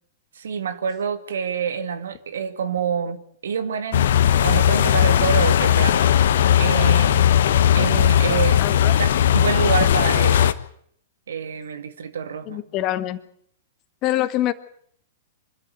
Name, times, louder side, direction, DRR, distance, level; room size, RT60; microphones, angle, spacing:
voice 1, 0.4-4.1 4.4-7.2 7.7-8.6 9.0-9.1 9.3-10.5 11.3-12.6, right 7 dB, 70° right, 10 dB, 2.2 m, -27 dB
sound 1, 3.9-10.5, left 10 dB, 65° left, 1.2 m, -17 dB
voice 2, 8.6-9.0 12.5-13.2 14.0-14.5, left 14 dB, 35° left, 12 dB, 1.7 m, -25 dB
26.0 x 13.0 x 9.2 m, 0.65 s
figure-of-eight pair, 105°, 0 cm